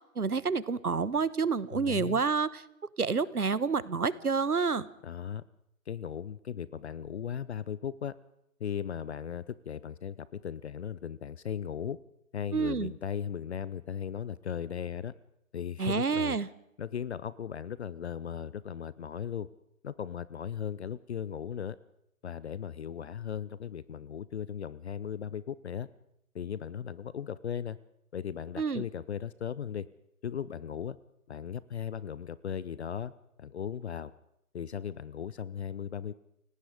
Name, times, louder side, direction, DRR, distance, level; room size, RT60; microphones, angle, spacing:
voice 1, 0.1-2.6 3.0-4.9 12.5-12.9 15.8-16.5 28.6-28.8, right 5 dB, 90° right, 19 dB, 1.2 m, -28 dB
voice 2, 1.7-2.2 5.0-5.4 5.9-8.1 8.6-12.0 12.3-15.1 15.5-16.4 16.8-19.5 19.8-21.8 22.2-25.9 26.3-27.8 28.1-29.9 30.2-31.0 31.3-33.1 33.4-34.1 34.5-36.1, left 8 dB, 50° left, 19 dB, 0.7 m, -37 dB
29.0 x 18.5 x 5.0 m, 0.78 s
figure-of-eight pair, 135°, 43 cm